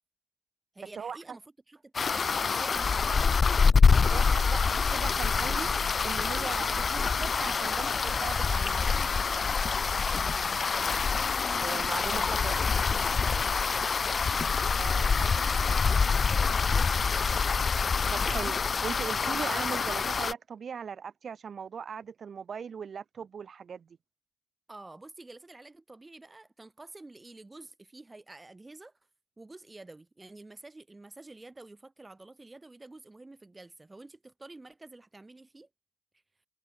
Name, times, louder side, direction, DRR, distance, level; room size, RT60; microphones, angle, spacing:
voice 1, 0.7-3.6 3.9-4.7 10.2-11.1 13.5-14.4 14.9-17.6 24.7-28.9 29.4-35.7, right 2 dB, 20° right, 3.5 m, -50 dB
sound 1, 1.9-20.3, left 5 dB, 40° left, 0.3 m, -26 dB
voice 2, 4.1-5.7 6.0-9.0 11.6-12.7 14.8-15.3 18.1-23.9, right 7 dB, 50° right, 0.5 m, -39 dB
cardioid pair, 90°, 0 cm